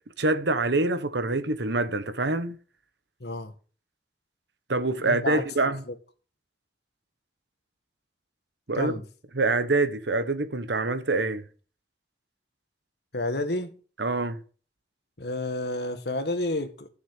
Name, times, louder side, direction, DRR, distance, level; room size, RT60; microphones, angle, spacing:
voice 1, 0.2-2.6 4.7-5.8 8.7-8.9 9.3-11.4 14.0-14.4, right 2 dB, 85° right, 1.2 m, -25 dB
voice 2, 3.2-3.5 5.0-5.4 5.9-6.0 8.7-9.0 13.1-13.8 15.2-16.9, left 2 dB, 70° left, 1.7 m, -30 dB
12.5 x 7.1 x 6.6 m
head